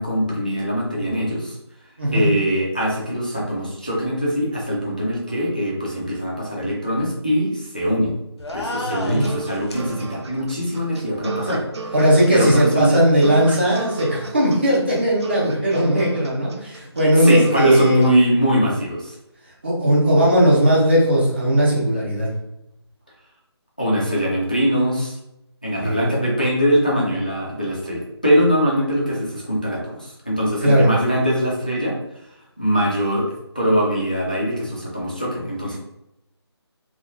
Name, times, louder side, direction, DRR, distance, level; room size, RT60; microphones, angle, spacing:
voice 1, 0.0-1.5 2.1-8.2 8.5-11.9 12.3-12.9 17.1-19.1 23.8-25.2 25.6-32.0 32.6-33.3 33.5-35.8, equal, 20° left, -4 dB, 0.3 m, -22 dB
voice 2, 2.0-2.3 8.8-9.2 11.9-18.0 19.6-22.3 25.8-26.2 30.6-30.9, right 1 dB, 25° right, -6 dB, 0.6 m, -17 dB
sound 1, 8.4-9.9, left 2 dB, 75° left, 0.6 m, -31 dB
sound 2, 8.5-18.1, right 3 dB, 75° right, 0.5 m, -33 dB
3.0 x 2.2 x 2.5 m, 0.84 s
figure-of-eight pair, 175°, 14 cm